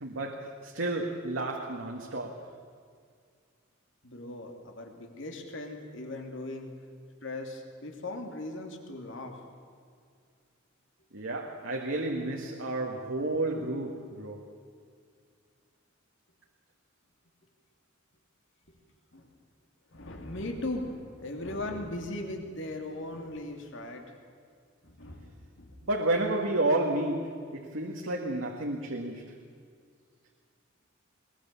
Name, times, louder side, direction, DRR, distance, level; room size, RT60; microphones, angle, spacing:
voice 1, 0.0-2.5 11.1-14.5 25.8-29.4, right 2 dB, 70° right, 0 dB, 1.8 m, -31 dB
voice 2, 4.0-6.7 7.2-9.4 18.7-18.8 19.1-19.3 19.9-24.2 24.8-25.9, left 2 dB, 65° left, 3 dB, 2.9 m, -38 dB
22.0 x 20.0 x 7.0 m, 2.1 s
head